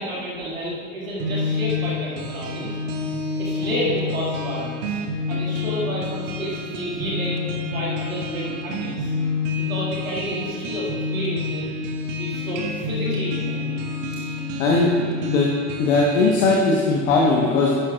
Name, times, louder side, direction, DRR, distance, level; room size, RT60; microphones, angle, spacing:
voice 1, 0.0-3.1 3.4-5.0 5.3-9.1 9.5-11.7 12.2-13.9, equal, 80° right, -5 dB, 2.1 m, -30 dB
sound 1, 1.2-16.6, left 3 dB, 60° right, 1.2 m, -28 dB
voice 2, 14.6-15.5 15.8-17.7, left 3 dB, 65° left, -2 dB, 1.2 m, -19 dB
11.0 x 10.5 x 2.4 m, 2.2 s
figure-of-eight pair, 65°, 41 cm